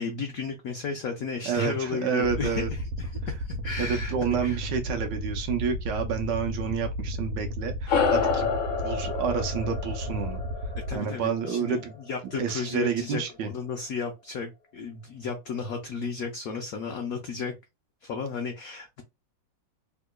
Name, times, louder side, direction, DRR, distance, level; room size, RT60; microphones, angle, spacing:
voice 1, 0.0-4.6 10.9-17.6 18.0-19.0, left 5 dB, 90° left, 0.7 m, -34 dB
voice 2, 1.4-2.7 3.8-8.5 8.8-10.4 10.9-11.9 12.3-13.5, right 6 dB, 70° right, 1.1 m, -29 dB
sound 1, 2.2-11.0, equal, 90° right, 1.5 m, -33 dB
sound 2, 7.9-12.6, left 5 dB, 60° left, 1.5 m, -29 dB
3.5 x 2.8 x 2.2 m
omnidirectional pair, 2.2 m